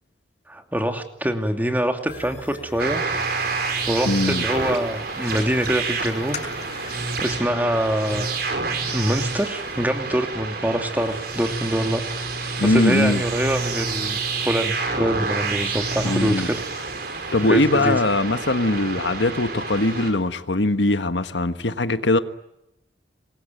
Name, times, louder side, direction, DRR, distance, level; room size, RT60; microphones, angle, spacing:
voice 1, 0.5-3.0 3.6-6.4 7.2-8.3 8.8-12.3 12.6-14.2 14.4-16.6 17.5-18.0, equal, 10° right, 2.6 m, -25 dB
sound 1, 2.1-7.1, left 4 dB, 40° left, 4.9 m, -40 dB
sound 2, 2.8-20.1, right 3 dB, 60° right, 5.4 m, -28 dB
voice 2, 4.1-4.4 12.6-13.2 16.0-16.5 17.3-22.2, left 2 dB, 80° left, 1.5 m, -21 dB
26.5 x 22.0 x 9.3 m
head